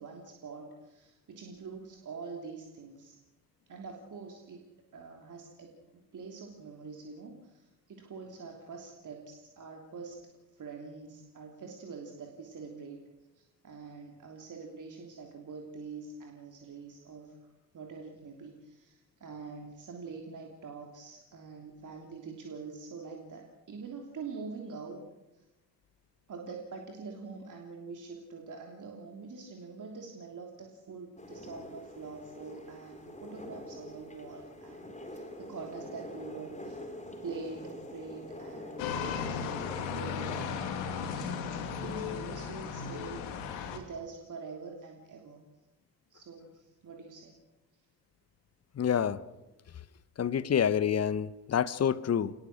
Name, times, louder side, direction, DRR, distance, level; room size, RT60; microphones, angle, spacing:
voice 1, 0.0-3.2 3.7-4.6 4.9-13.1 13.3-17.5 17.7-25.0 25.3-25.5 26.3-36.8 37.2-41.4 41.8-45.4 46.1-47.3, right 4 dB, 40° right, 3.2 m, -45 dB
sound 1, 31.2-40.5, left 1 dB, 15° left, 4.3 m, -45 dB
sound 2, 38.8-43.8, left 6 dB, 60° left, 2.7 m, -35 dB
voice 2, 48.8-49.2 50.2-52.3, left 8 dB, 30° left, 1.1 m, -27 dB
28.0 x 20.0 x 6.4 m
figure-of-eight pair, 50°, 49 cm